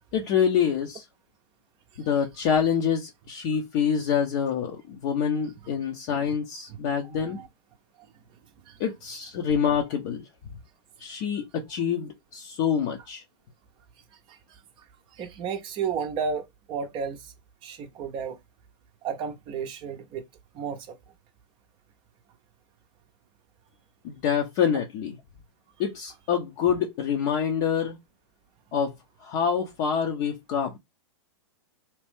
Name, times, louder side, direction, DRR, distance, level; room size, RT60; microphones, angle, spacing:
voice 1, 0.1-1.0 2.0-7.4 8.8-10.3 11.0-13.2 24.0-25.2 25.8-28.0 28.7-28.9 29.2-30.8, left 7 dB, 45° left, 0.7 m, -26 dB
voice 2, 7.1-7.5 8.7-8.8 14.3-14.4 15.2-17.3 17.6-18.4 19.0-20.2 20.5-21.0, right 6 dB, 30° right, 0.6 m, -32 dB
2.9 x 2.5 x 3.5 m
hypercardioid pair, 105°, 15 cm